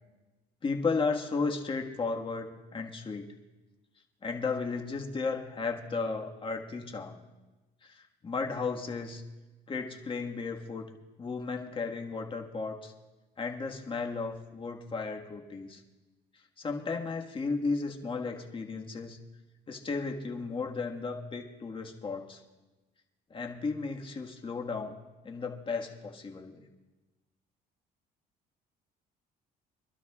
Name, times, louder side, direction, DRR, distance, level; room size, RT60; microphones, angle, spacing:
voice 1, 0.6-3.3 4.2-7.2 7.8-9.2 9.7-10.9 11.2-12.9 13.4-15.8 16.6-19.2 19.7-22.4 23.3-26.6, left 4 dB, 30° left, 2 dB, 1.6 m, -34 dB
27.5 x 12.0 x 2.4 m, 1.1 s
cardioid pair, 110°, 17 cm